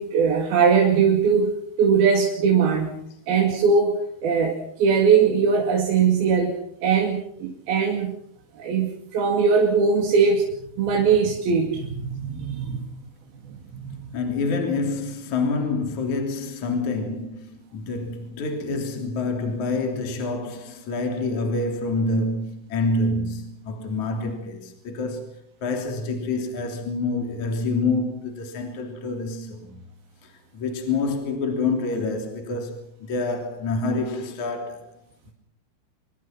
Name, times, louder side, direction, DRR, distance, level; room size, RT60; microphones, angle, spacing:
voice 1, 0.0-2.9 3.3-4.0 4.2-6.6 6.8-8.2 8.6-10.5 10.8-12.9 13.8-14.2, right 6 dB, 65° right, 4.1 m, -20 dB
voice 2, 14.1-29.7 30.2-32.8 33.1-35.0, left 3 dB, 45° left, 4.4 m, -27 dB
25.5 x 23.0 x 6.0 m
omnidirectional pair, 4.8 m